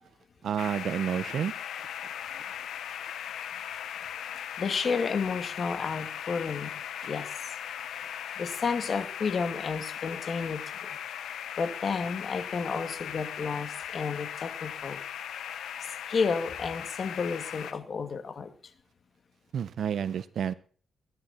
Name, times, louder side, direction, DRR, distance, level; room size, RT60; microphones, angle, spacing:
voice 1, 0.4-1.5 19.5-20.5, right 8 dB, 70° right, 1.0 m, -30 dB
sound 1, 0.6-17.7, left 9 dB, 90° left, 1.1 m, -38 dB
voice 2, 4.6-6.7 7.1-7.3 8.4-10.6 11.6-15.0 15.8-18.5, left 5 dB, 50° left, 2.5 m, -31 dB
20.5 x 11.0 x 4.5 m
cardioid pair, 90°, 0 cm